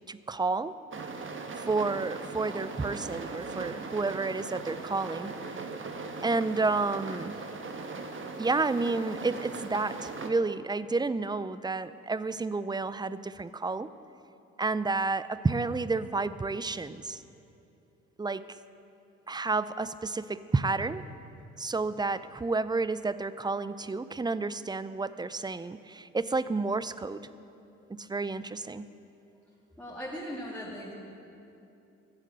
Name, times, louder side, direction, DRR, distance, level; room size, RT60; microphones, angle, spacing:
voice 1, 0.1-0.7 1.6-5.3 6.2-7.4 8.4-13.9 14.6-17.2 18.2-18.5 19.3-21.0 21.6-27.2 27.9-28.9, right 3 dB, 15° right, 15 dB, 0.5 m, -30 dB
sound 1, 0.9-10.3, right 3 dB, 35° right, 1.4 m, -39 dB
voice 2, 29.8-30.9, equal, 5° left, -7 dB, 2.7 m, -38 dB
15.0 x 7.5 x 7.5 m, 2.8 s
hypercardioid pair, 50°, 33 cm